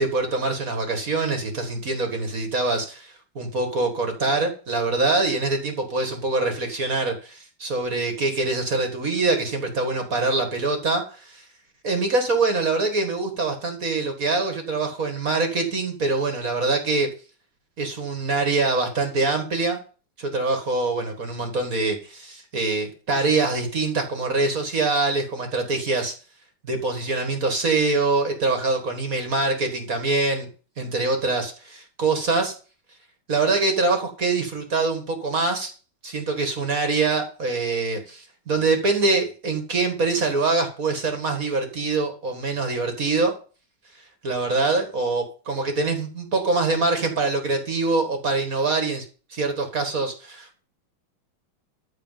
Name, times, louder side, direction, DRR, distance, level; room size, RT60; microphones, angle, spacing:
voice 1, 0.0-11.4 11.8-17.1 17.8-19.8 20.2-26.1 26.6-30.5 30.8-32.5 33.3-35.7 36.0-43.3 44.2-49.1 49.3-50.6, right 3 dB, 45° right, 5 dB, 2.2 m, -24 dB
14.0 x 4.6 x 7.5 m, 0.37 s
omnidirectional pair, 2.3 m